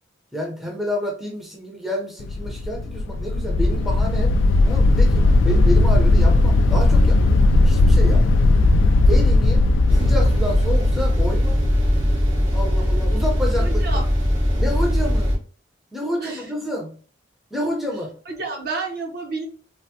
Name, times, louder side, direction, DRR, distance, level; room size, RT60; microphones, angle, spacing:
voice 1, 0.3-4.3 4.6-7.2 7.6-8.4 9.1-9.6 9.9-11.6 12.5-13.8 14.6-15.3 15.9-17.0 17.5-18.1, equal, ahead, -2 dB, 0.6 m, -29 dB
sound 1, 2.2-12.2, left 2 dB, 75° left, 0.3 m, -17 dB
sound 2, 9.9-15.4, equal, 80° right, 1.2 m, -20 dB
voice 2, 13.6-14.0 16.2-16.5 18.3-19.4, right 3 dB, 50° right, 0 dB, 0.7 m, -30 dB
3.3 x 2.1 x 2.7 m, 0.41 s
head